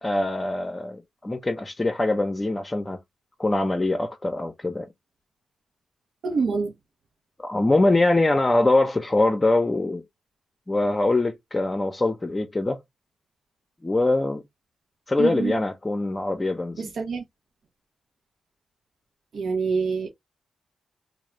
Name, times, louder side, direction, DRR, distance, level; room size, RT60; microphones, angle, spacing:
voice 1, 0.0-3.0 3.4-4.9 7.4-10.0 10.7-12.8 13.8-14.4 15.1-16.9, left 2 dB, 25° left, 0.6 m, -23 dB
voice 2, 6.2-6.7 15.2-15.5 16.8-17.2 19.3-20.1, right 5 dB, 65° right, 0.6 m, -26 dB
2.3 x 2.1 x 3.0 m
supercardioid pair, 50°, 0 cm